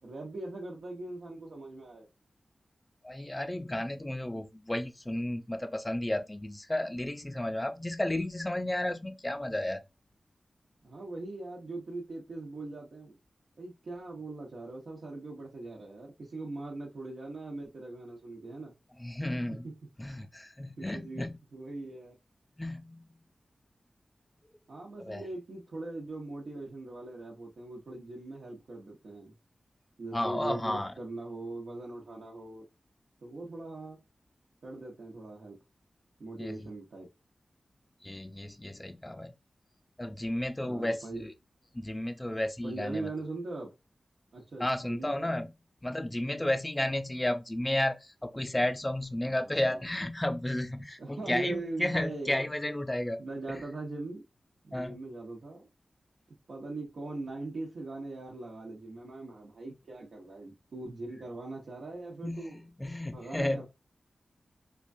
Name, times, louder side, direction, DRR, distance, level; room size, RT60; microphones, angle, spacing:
voice 1, 0.0-2.1 10.8-13.2 13.6-18.7 19.5-19.8 20.8-22.1 24.7-29.3 30.0-32.6 33.2-34.0 34.6-35.6 36.2-37.1 40.6-41.2 42.6-43.7 44.3-45.3 49.2-49.8 51.0-52.5 53.2-54.2 54.6-55.7 56.5-62.6 63.1-63.6, right 2 dB, 80° right, 1.0 m, -41 dB
voice 2, 3.0-9.8 19.0-19.7 20.0-21.4 22.6-23.1 25.0-25.2 30.1-30.9 36.4-36.6 38.0-39.3 40.0-41.3 41.7-43.1 44.6-45.5 45.8-53.2 53.5-53.6 54.7-55.0 62.2-63.6, left 1 dB, 15° left, 0.4 m, -33 dB
4.4 x 2.3 x 2.6 m
wide cardioid pair, 110°, 0 cm